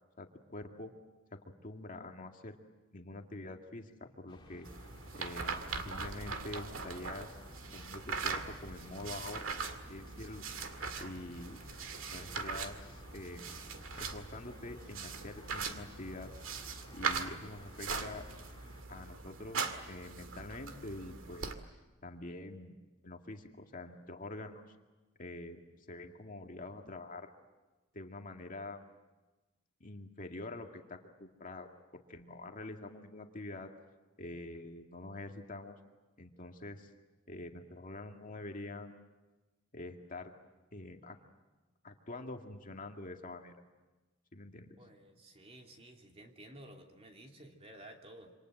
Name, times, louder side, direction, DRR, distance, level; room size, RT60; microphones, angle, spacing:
voice 1, 0.2-0.9 1.3-2.5 2.9-4.7 5.1-7.3 7.7-9.5 9.9-10.4 11.0-11.6 12.1-13.5 13.9-16.3 16.9-18.3 18.9-21.5 22.0-22.8 23.0-24.7 25.2-25.6 25.9-27.3 27.9-28.8 29.8-33.7 34.2-35.7 36.2-36.9 37.3-39.0 39.7-40.3 40.7-41.2 41.8-43.5 44.3-44.8, left 2 dB, 40° left, 3 dB, 2.1 m, -46 dB
sound 1, 4.3-18.8, left 1 dB, 25° left, 1.7 m, -56 dB
sound 2, 4.6-21.5, right 5 dB, 70° right, 2.2 m, -41 dB
voice 2, 44.8-48.3, right 1 dB, 30° right, 2 dB, 3.0 m, -53 dB
27.5 x 26.0 x 7.9 m, 1.2 s
head